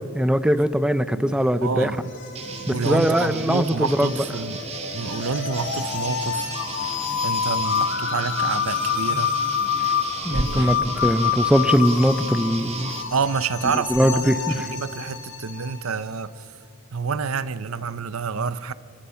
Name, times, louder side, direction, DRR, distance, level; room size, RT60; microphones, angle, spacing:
voice 1, 0.1-1.9 2.7-4.1 10.2-12.9 13.9-14.6, equal, 5° right, 0.6 m, -21 dB
voice 2, 1.2-2.1 2.6-4.6 4.9-6.5 6.9-9.4 10.3-10.8 13.1-16.5 16.9-18.7, right 5 dB, 75° right, 0.8 m, -28 dB
sound 1, 1.3-15.9, left 7 dB, 60° left, 7.2 m, -28 dB
sound 2, 2.2-2.3 2.7-4.7 5.8-5.9 7.7-8.0 8.3-8.4 10.0-11.8 12.1-12.4 12.7-14.7, right 1 dB, 55° right, 1.0 m, -37 dB
sound 3, 2.3-13.0, right 4 dB, 30° right, 1.7 m, -36 dB
28.0 x 25.5 x 5.8 m
head